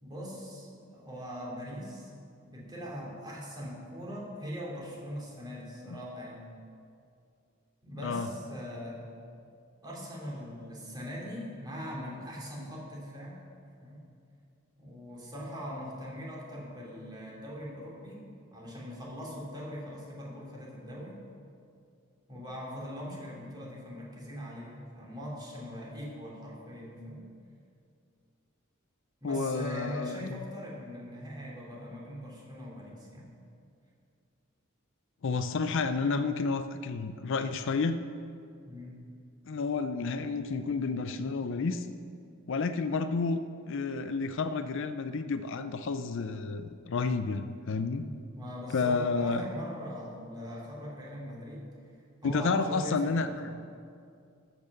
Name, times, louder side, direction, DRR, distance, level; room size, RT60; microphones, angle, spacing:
voice 1, 0.0-2.1 2.5-6.5 7.8-9.1 9.8-13.4 13.8-14.0 14.8-18.2 18.5-21.2 22.3-27.3 29.2-33.3 38.6-39.1 48.0-51.7 52.2-53.3, equal, 20° right, -5 dB, 2.9 m, -41 dB
voice 2, 29.2-30.5 35.2-38.0 39.5-41.9 42.5-43.4 43.7-48.1 48.7-49.4 52.2-53.5, left 4 dB, 65° left, 10 dB, 0.5 m, -30 dB
13.5 x 6.0 x 6.6 m, 2.4 s
head